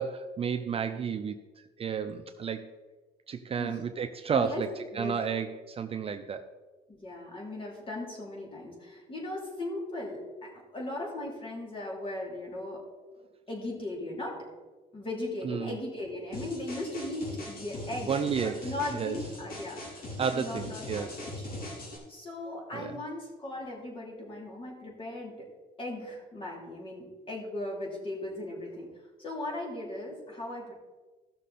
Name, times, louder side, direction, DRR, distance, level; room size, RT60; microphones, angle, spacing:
voice 1, 0.0-1.4 1.8-2.7 3.3-4.7 4.9-6.4 15.4-15.7 18.1-19.2 20.2-21.2 22.7-23.0, right 6 dB, 35° right, 8 dB, 0.6 m, -32 dB
voice 2, 4.3-4.6 4.9-5.2 6.9-12.8 13.5-14.5 14.9-18.1 18.4-21.5 22.1-25.5 25.8-28.9 29.2-30.7, left 1 dB, 30° left, -1 dB, 3.4 m, -38 dB
sound 1, 16.3-22.0, left 1 dB, 60° left, 3.6 m, -40 dB
15.0 x 6.4 x 4.2 m, 1.3 s
cardioid pair, 110°, 17 cm